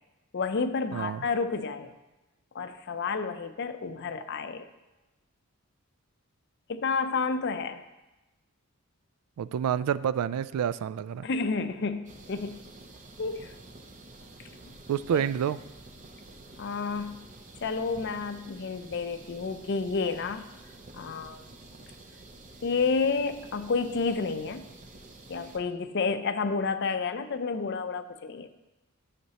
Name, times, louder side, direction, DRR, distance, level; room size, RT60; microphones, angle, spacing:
voice 1, 0.3-2.0 2.5-4.7 6.7-7.8 11.2-12.6 13.2-13.5 14.7-14.8 15.1-15.2 16.6-17.2 17.6-20.4 20.9-21.4 22.6-24.7 25.3-28.5, left 4 dB, 50° left, 10 dB, 0.5 m, -30 dB
voice 2, 0.9-1.3 9.4-11.3 14.9-15.6, right 9 dB, 85° right, 17 dB, 0.3 m, -28 dB
sound 1, 12.0-25.6, right 2 dB, 35° right, 0.7 m, -49 dB
12.5 x 6.6 x 2.9 m, 1.1 s
head